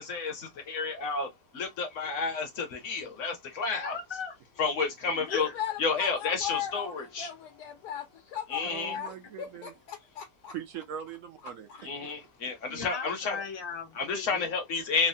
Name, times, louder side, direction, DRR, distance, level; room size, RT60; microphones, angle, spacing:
voice 1, 0.0-3.9 4.6-5.5 5.8-7.3 8.5-8.9 11.8-13.4 14.0-15.1, left 4 dB, 55° left, 1.1 m, -31 dB
voice 2, 3.8-4.4 5.2-5.6 11.7-11.9 12.7-14.5, left 5 dB, 30° left, 0.5 m, -39 dB
voice 3, 5.1-10.5 11.7-12.1, left 10 dB, 75° left, 1.2 m, -38 dB
voice 4, 8.7-9.7 10.5-11.7, right 9 dB, 65° right, 0.8 m, -41 dB
3.2 x 2.1 x 2.6 m
omnidirectional pair, 1.7 m